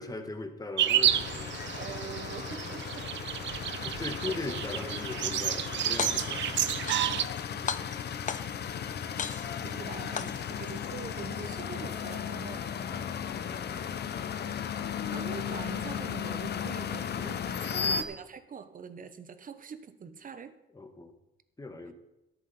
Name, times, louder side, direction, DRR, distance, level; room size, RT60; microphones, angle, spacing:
voice 1, 0.0-1.5 3.7-7.0 17.6-18.1 20.7-21.1 21.6-21.9, left 2 dB, 20° left, 6 dB, 1.7 m, -40 dB
sound 1, 0.8-7.2, right 11 dB, 65° right, 0.6 m, -30 dB
sound 2, 1.0-18.0, left 7 dB, 55° left, 1.0 m, -35 dB
voice 2, 1.7-3.1 4.2-4.3 7.3-7.7 9.6-12.7 15.1-20.5, right 6 dB, 45° right, 11 dB, 1.1 m, -44 dB
sound 3, 5.8-6.5 6.9-7.4 7.7-8.7 9.2-9.7 10.2-10.7, left 7 dB, 40° left, 0.7 m, -35 dB
13.0 x 11.5 x 4.4 m, 0.93 s
cardioid pair, 90°, 20 cm